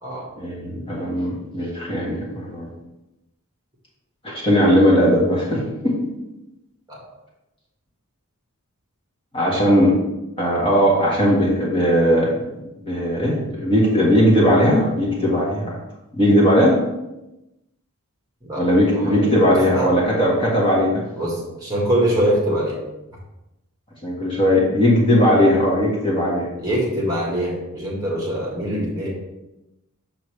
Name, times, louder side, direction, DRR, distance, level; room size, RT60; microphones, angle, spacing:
voice 1, 0.4-2.7 4.2-5.9 9.3-10.0 10.4-12.5 12.8-15.8 16.1-16.8 18.6-21.0 24.0-26.5, equal, 25° left, -5 dB, 1.6 m, -18 dB
voice 2, 18.9-19.9 21.2-22.8 26.6-29.1, right 1 dB, 15° right, -4 dB, 1.7 m, -24 dB
6.6 x 6.1 x 3.3 m, 0.95 s
head